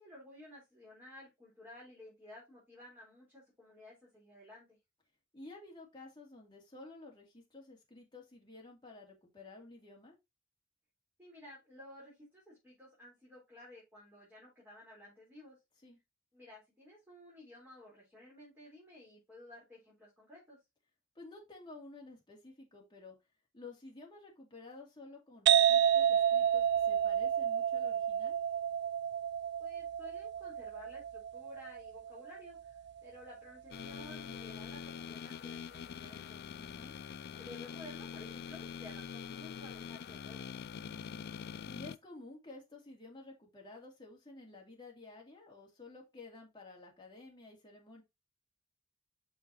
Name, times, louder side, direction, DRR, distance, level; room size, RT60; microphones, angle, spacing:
voice 1, 0.0-4.8 11.2-15.6 16.3-20.6 29.6-36.4 37.3-40.5, left 1 dB, 10° right, -7 dB, 4.0 m, -54 dB
voice 2, 5.3-10.1 15.8-16.0 21.1-23.2 23.5-28.4 36.6-36.9 41.7-48.0, left 3 dB, 20° left, -1 dB, 2.6 m, -52 dB
sound 1, 25.5-32.9, right 9 dB, 55° right, 0.4 m, -30 dB
sound 2, 33.7-42.0, left 7 dB, 50° left, 0.3 m, -44 dB
6.7 x 5.8 x 3.0 m, 0.22 s
head